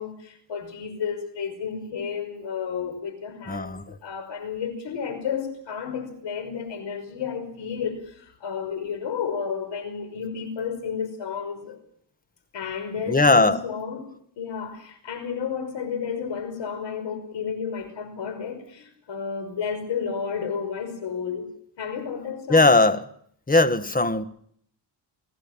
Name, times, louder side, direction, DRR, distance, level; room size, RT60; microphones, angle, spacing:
voice 1, 0.0-11.8 12.5-14.0 14.4-21.5 21.8-22.7, left 6 dB, 80° left, 5.7 m, -32 dB
voice 2, 3.5-3.8 13.1-13.6 22.5-23.0 23.5-24.2, left 2 dB, 20° left, 1.6 m, -18 dB
29.5 x 17.5 x 7.5 m
cardioid pair, 110°, 43 cm